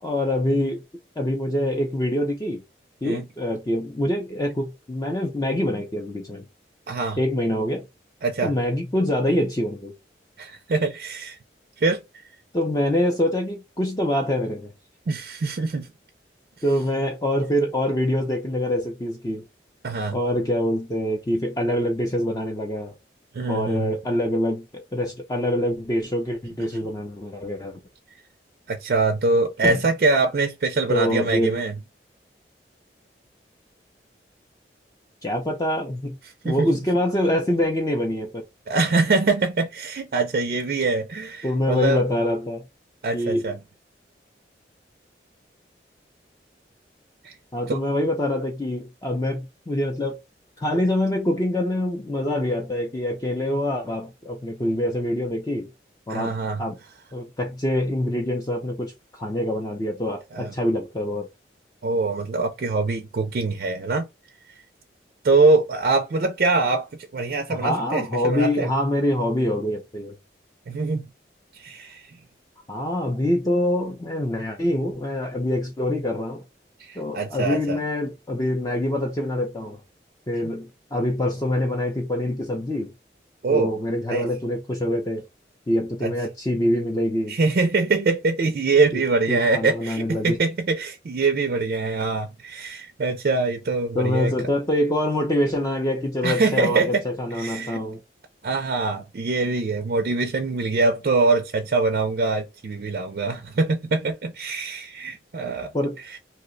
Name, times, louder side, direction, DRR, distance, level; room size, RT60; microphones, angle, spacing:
voice 1, 0.0-0.8 1.2-2.6 3.0-6.4 7.2-7.9 8.4-9.9 12.5-14.7 16.6-19.4 20.1-22.9 23.5-27.8 29.6-29.8 30.9-31.6 35.2-36.2 36.4-38.4 41.4-42.6 43.1-43.5 47.5-50.2 50.6-55.7 56.1-56.8 57.1-61.3 67.5-70.2 72.7-76.4 77.0-79.8 80.3-82.9 83.5-85.2 85.7-87.4 88.9-89.0 89.3-90.4 93.9-98.0 105.7-106.0, left 1 dB, 20° left, 0.4 m, -25 dB
voice 2, 6.9-7.2 8.2-8.5 10.4-11.4 11.8-12.0 15.1-15.9 19.8-20.2 23.3-24.0 28.7-31.7 36.4-36.7 38.7-42.0 43.0-43.6 47.2-47.4 47.7-47.8 56.1-56.6 60.3-60.5 61.8-64.1 65.2-68.7 70.7-71.1 71.5-72.1 76.8-77.8 83.4-83.7 84.1-84.3 86.0-86.1 87.3-94.3 96.2-97.0 97.3-97.8 98.4-105.7 106.1-106.2, right 3 dB, 55° right, 0.4 m, -23 dB
2.7 x 2.1 x 3.8 m
head